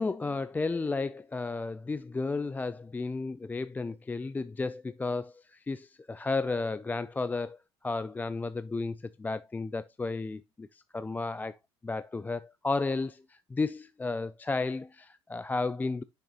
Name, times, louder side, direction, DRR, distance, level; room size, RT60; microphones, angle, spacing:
voice 1, 0.0-7.6 7.8-11.6 11.8-16.0, left 3 dB, 15° left, 0.3 m, -33 dB
6.5 x 6.4 x 2.9 m
supercardioid pair, 85°, 11 cm